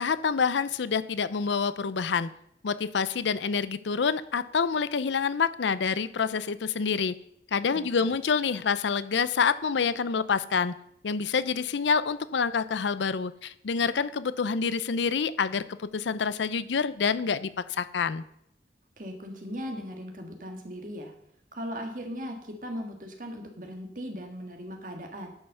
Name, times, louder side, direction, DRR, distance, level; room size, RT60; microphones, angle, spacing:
voice 1, 0.0-2.3 2.6-7.1 7.5-10.7 11.0-18.2, left 5 dB, 85° left, 15 dB, 0.5 m, -27 dB
voice 2, 7.7-8.2 19.0-21.1 21.5-25.3, equal, 45° right, 4 dB, 1.7 m, -38 dB
10.5 x 5.6 x 6.6 m, 0.74 s
head